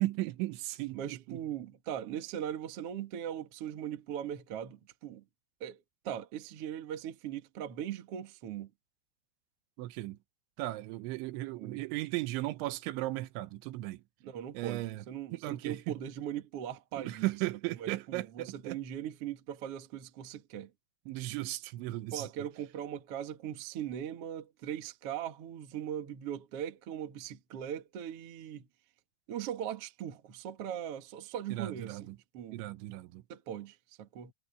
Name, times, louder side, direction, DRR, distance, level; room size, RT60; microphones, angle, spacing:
voice 1, 0.0-1.4 9.8-10.2 10.6-14.0 14.5-15.0 15.3-16.0 17.0-18.8 21.1-22.3 31.5-32.2 32.5-33.2, right 18 dB, 80° right, 3.2 m, -36 dB
voice 2, 0.9-5.2 5.6-5.8 6.0-8.7 11.3-11.8 14.2-17.3 17.8-20.7 22.1-28.7 29.3-32.6 33.3-34.3, right 10 dB, 65° right, 1.5 m, -40 dB
omnidirectional pair, 5.3 m